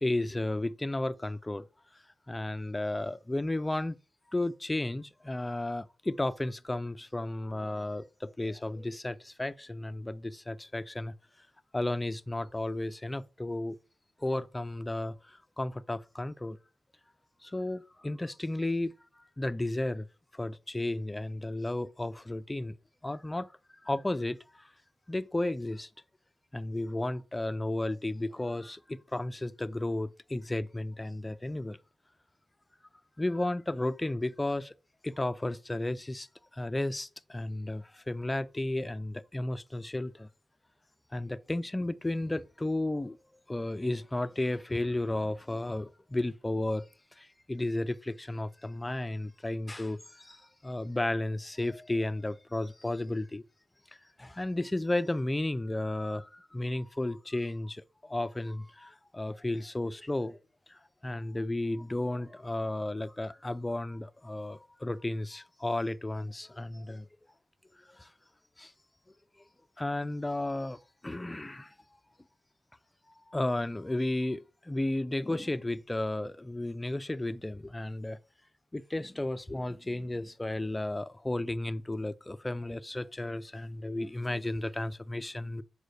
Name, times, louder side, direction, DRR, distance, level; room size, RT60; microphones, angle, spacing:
voice 1, 0.0-1.7 2.3-4.0 4.3-11.1 11.7-13.8 14.2-16.6 17.4-20.1 20.3-22.7 23.0-23.5 23.8-24.7 25.1-25.9 26.5-31.8 33.2-34.7 35.0-40.3 41.1-43.2 43.5-46.9 47.2-53.4 54.2-60.4 60.7-67.1 67.9-68.1 68.6-68.7 69.8-71.7 73.3-78.2 78.7-85.6, left 1 dB, 15° left, 0.5 m, -33 dB
6.5 x 4.8 x 6.4 m
cardioid pair, 90°, 0 cm